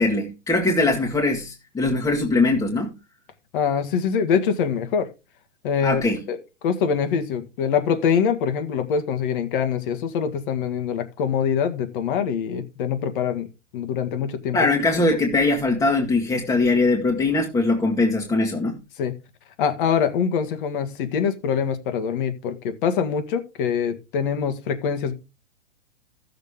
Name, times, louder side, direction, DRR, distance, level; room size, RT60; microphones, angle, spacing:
voice 1, 0.0-2.9 5.8-6.2 14.5-18.8, left 2 dB, 10° left, 1.6 m, -21 dB
voice 2, 3.5-5.1 5.6-6.0 6.3-6.4 6.6-13.5 13.7-14.6 19.0-19.1 19.6-25.1, left 7 dB, 45° left, 1.9 m, -24 dB
15.0 x 6.8 x 3.6 m
figure-of-eight pair, 110°, 35 cm